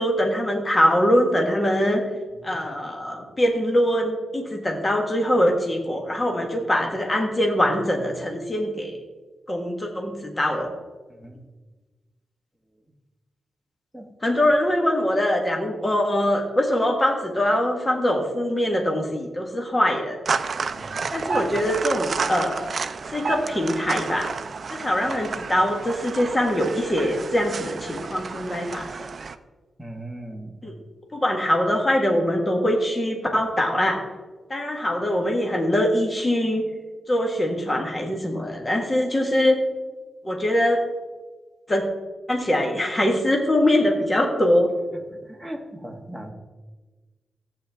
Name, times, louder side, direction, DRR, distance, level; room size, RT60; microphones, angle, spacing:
voice 1, 0.0-2.0 2.4-9.0 9.5-10.7 14.2-20.2 21.1-22.7 23.1-24.3 24.7-28.9 30.6-30.8 31.1-34.0 34.5-36.6 37.1-39.6 40.2-40.8 41.7-41.8 42.3-44.7, left 1 dB, 20° left, 2 dB, 1.5 m, -23 dB
voice 2, 11.1-11.4 13.9-14.1 20.7-21.1 21.4-21.5 29.8-30.5 44.9-46.3, right 1 dB, ahead, 1 dB, 1.4 m, -39 dB
sound 1, 20.3-29.4, right 5 dB, 45° right, 0.5 m, -30 dB
14.5 x 8.8 x 3.5 m, 1.3 s
wide cardioid pair, 125°, 0 cm